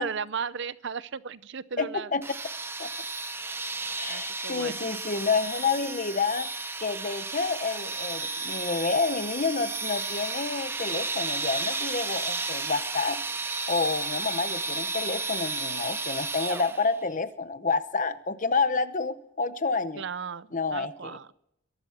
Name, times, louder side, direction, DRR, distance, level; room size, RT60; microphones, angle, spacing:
voice 1, 0.0-2.1 4.1-4.9 20.0-21.3, right 6 dB, 55° right, 18 dB, 0.6 m, -35 dB
voice 2, 1.8-2.2 2.8-2.9 4.0-6.5 6.8-13.2 13.7-20.0 20.5-21.2, left 4 dB, 35° left, 12 dB, 0.9 m, -29 dB
sound 1, 2.2-17.0, right 3 dB, 10° right, 0.7 m, -33 dB
22.5 x 12.5 x 4.3 m, 0.76 s
head